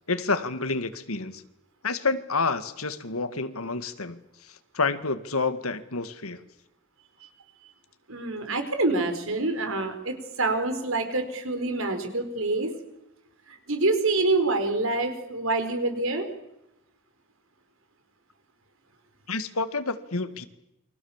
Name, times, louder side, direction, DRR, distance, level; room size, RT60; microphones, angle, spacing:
voice 1, 0.1-1.4 1.8-4.2 4.7-6.4 19.3-20.5, left 4 dB, 80° left, 11 dB, 1.9 m, -28 dB
voice 2, 8.1-12.7 13.5-16.3, right 2 dB, 65° right, 7 dB, 4.9 m, -26 dB
29.0 x 24.5 x 7.4 m, 0.89 s
head